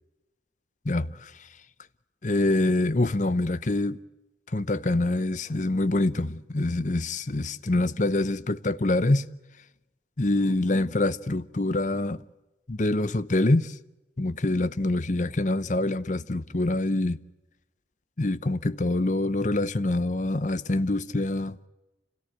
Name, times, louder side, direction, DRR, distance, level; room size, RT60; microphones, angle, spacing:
voice 1, 0.8-1.3 2.2-4.0 4.5-9.2 10.2-12.2 12.7-13.7 14.2-17.2 18.2-21.6, left 2 dB, 40° left, 0.7 m, -25 dB
27.0 x 17.5 x 9.2 m
head